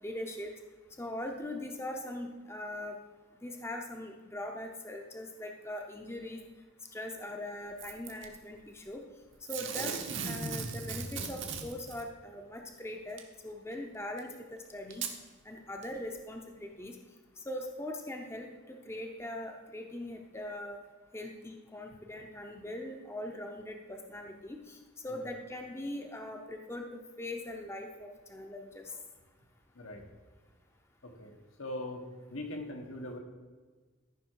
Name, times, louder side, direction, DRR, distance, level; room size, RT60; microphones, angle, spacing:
voice 1, 0.0-0.5 1.0-3.0 3.4-6.4 6.9-9.0 9.5-9.9 10.2-15.1 15.4-17.0 17.4-20.8 21.1-29.0, left 1 dB, 10° left, 3 dB, 0.7 m, -41 dB
Packing tape duct tape / Tearing, 7.8-8.3 9.5-12.0 13.2-13.3 14.2-14.3 14.9-15.2 15.8-15.9, right 5 dB, 65° right, 1.2 m, -37 dB
voice 2, 29.7-30.0 31.0-33.2, left 1 dB, 85° left, 2 dB, 1.5 m, -42 dB
14.0 x 5.8 x 4.7 m, 1.4 s
head